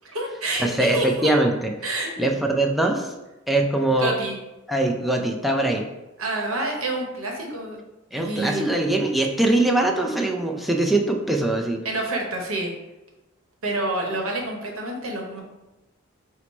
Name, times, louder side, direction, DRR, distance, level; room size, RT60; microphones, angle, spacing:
voice 1, 0.0-1.3 1.8-2.1 3.9-4.4 6.2-7.8 8.1-8.7 11.8-12.7 13.6-15.4, right 2 dB, 80° right, 1 dB, 0.9 m, -28 dB
voice 2, 0.6-1.7 2.2-3.1 3.5-4.1 4.7-5.8 8.1-11.8, right 2 dB, ahead, 1 dB, 0.3 m, -22 dB
4.5 x 2.1 x 4.1 m, 1.0 s
head